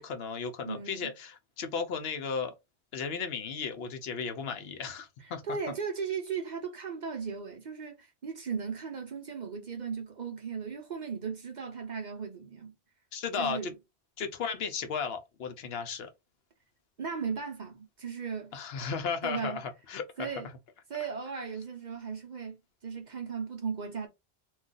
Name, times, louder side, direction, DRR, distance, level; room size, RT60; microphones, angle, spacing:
voice 1, 0.0-2.5 2.9-5.4 13.1-13.7 14.2-16.1 18.5-20.3, left 6 dB, 65° left, 0.8 m, -35 dB
voice 2, 0.7-1.1 5.2-12.7 13.4-13.7 17.0-18.6 19.2-19.6 20.2-20.5 20.9-22.6 22.8-24.1, right 6 dB, 50° right, 0.6 m, -36 dB
2.4 x 2.3 x 3.8 m
omnidirectional pair, 1.1 m